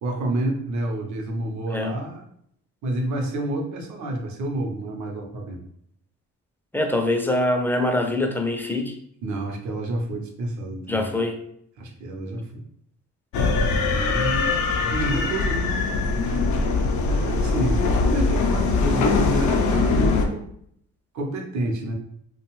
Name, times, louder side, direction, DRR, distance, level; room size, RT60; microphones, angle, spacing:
voice 1, 0.0-2.2 2.8-5.6 9.2-11.1 11.8-12.6 13.9-14.6 14.9-15.7 17.0-20.4 21.1-21.9, right 1 dB, 70° right, 2 dB, 0.7 m, -29 dB
voice 2, 6.7-9.0 10.9-11.4, left 1 dB, 5° left, 3 dB, 0.4 m, -24 dB
sound 1, 13.3-20.3, left 4 dB, 75° left, 0.5 m, -22 dB
2.5 x 2.2 x 3.0 m, 0.68 s
cardioid pair, 90°, 30 cm